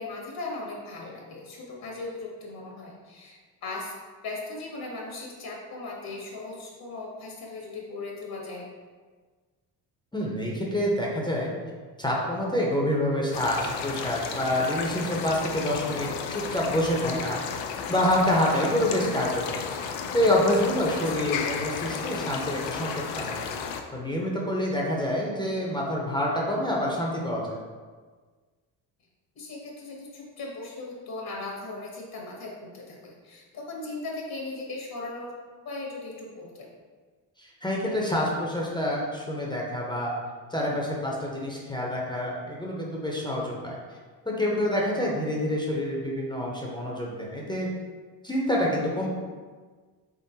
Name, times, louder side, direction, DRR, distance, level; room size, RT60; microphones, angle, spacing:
voice 1, 0.0-3.9 4.2-8.6 20.9-21.3 29.3-35.3 35.6-36.7, left 2 dB, 55° left, -2 dB, 1.0 m, -38 dB
voice 2, 10.1-11.5 12.0-17.4 17.9-19.6 20.1-23.4 23.9-27.5 37.4-40.1 40.5-43.8 44.2-47.7 48.2-49.1, left 1 dB, 10° left, -3 dB, 0.7 m, -27 dB
sound 1, 13.3-23.8, left 6 dB, 85° left, 0.5 m, -33 dB
3.7 x 3.6 x 2.8 m, 1.5 s
cardioid pair, 90°, 43 cm